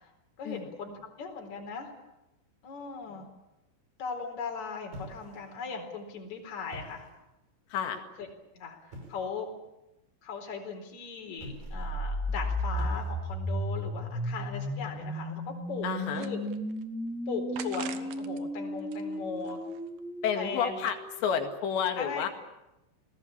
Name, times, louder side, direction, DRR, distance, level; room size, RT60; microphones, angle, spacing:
voice 1, 0.4-1.9 2.6-3.3 4.0-7.1 8.5-9.5 10.2-15.4 15.7-16.4 17.3-19.6 20.4-20.8 21.9-22.3, left 5 dB, 35° left, 2 dB, 5.1 m, -38 dB
sound 1, 4.9-5.7 6.6-7.3 8.9-9.4 11.3-12.0 12.8-13.5, equal, 45° right, 7.1 m, -46 dB
voice 2, 7.7-8.0 15.8-16.3 20.2-22.3, left 7 dB, 65° left, 6 dB, 4.0 m, -31 dB
sound 2, 11.6-21.4, equal, ahead, 1.0 m, -34 dB
sound 3, 15.5-16.8 17.5-18.4 18.8-20.0, right 11 dB, 80° right, 2.1 m, -45 dB
28.5 x 19.5 x 8.7 m, 0.97 s
omnidirectional pair, 5.7 m